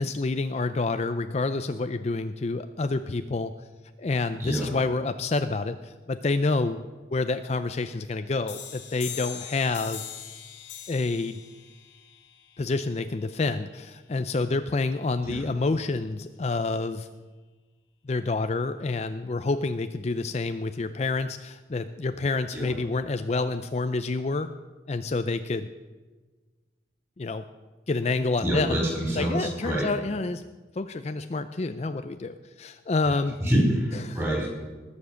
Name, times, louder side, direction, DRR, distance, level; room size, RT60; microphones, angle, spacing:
voice 1, 0.0-3.5 4.0-6.9 7.1-10.1 10.9-11.4 12.6-17.1 18.1-24.5 24.9-25.7 27.2-27.4 27.9-28.8 29.2-30.4 30.8-33.4 34.0-34.2, left 3 dB, 35° left, 10 dB, 0.4 m, -28 dB
sound 1, 8.5-13.9, left 9 dB, 90° left, 2.0 m, -42 dB
voice 2, 28.4-29.9 33.4-34.5, right 1 dB, 15° right, -2 dB, 4.6 m, -26 dB
19.5 x 7.2 x 6.5 m, 1.3 s
head